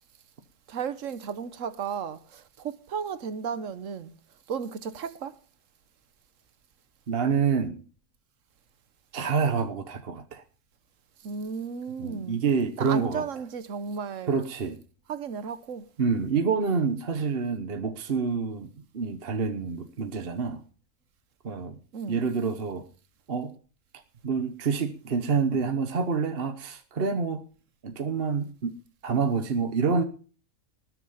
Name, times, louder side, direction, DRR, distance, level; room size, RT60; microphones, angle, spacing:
voice 1, 0.7-4.1 4.5-5.4 11.2-12.4 12.8-14.4 15.1-15.9 21.9-22.3, right 6 dB, 65° right, 1.3 m, -34 dB
voice 2, 7.1-7.8 9.1-10.4 12.0-13.2 14.3-14.8 16.0-20.6 21.4-21.8 22.1-22.8 23.3-23.5 24.2-27.4 27.8-28.8 29.0-30.0, right 5 dB, 45° right, 1.2 m, -27 dB
19.5 x 7.5 x 5.6 m
omnidirectional pair, 1.4 m